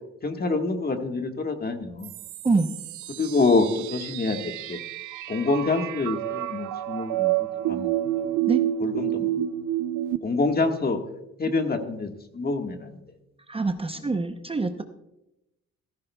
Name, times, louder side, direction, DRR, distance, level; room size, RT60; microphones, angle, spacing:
voice 1, 0.2-2.1 3.2-4.8 5.3-7.9 8.8-9.3 10.2-11.0 11.4-13.0, left 3 dB, 30° left, 5 dB, 1.5 m, -26 dB
sound 1, 2.0-10.2, right 13 dB, 85° right, 0.6 m, -29 dB
voice 2, 13.5-14.8, right 3 dB, 20° right, 7 dB, 0.7 m, -25 dB
15.0 x 13.5 x 2.3 m, 0.89 s
cardioid pair, 90°, 30 cm